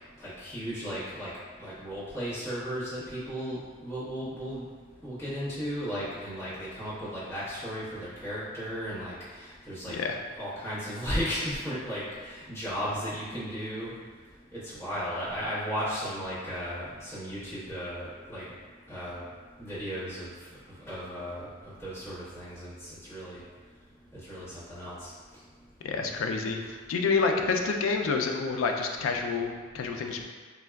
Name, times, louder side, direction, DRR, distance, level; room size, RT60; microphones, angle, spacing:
voice 1, 0.2-1.3 1.6-4.6 5.0-9.9 10.4-13.9 14.5-18.4 18.9-19.2 19.6-20.3 20.8-21.5 21.8-23.4 24.3-25.1, equal, 15° left, -13 dB, 0.9 m, -35 dB
voice 2, 9.9-10.2 25.8-26.6 26.9-30.3, left 4 dB, 75° left, 3 dB, 0.3 m, -28 dB
3.3 x 2.2 x 2.2 m, 1.5 s
head